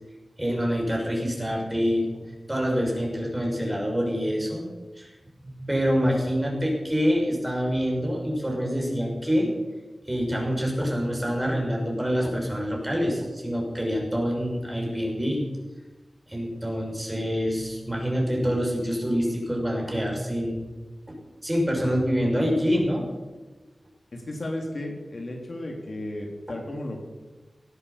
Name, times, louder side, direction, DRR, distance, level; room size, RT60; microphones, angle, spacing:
voice 1, 0.4-2.2 2.5-4.7 5.0-5.1 5.4-9.5 10.1-15.4 16.3-20.6 21.1-23.1 26.5-26.6, equal, 15° right, -1 dB, 5.7 m, -26 dB
voice 2, 24.1-27.0, left 1 dB, 55° left, 0 dB, 3.3 m, -34 dB
17.5 x 12.0 x 6.8 m, 1.2 s
wide cardioid pair, 85°, 0 cm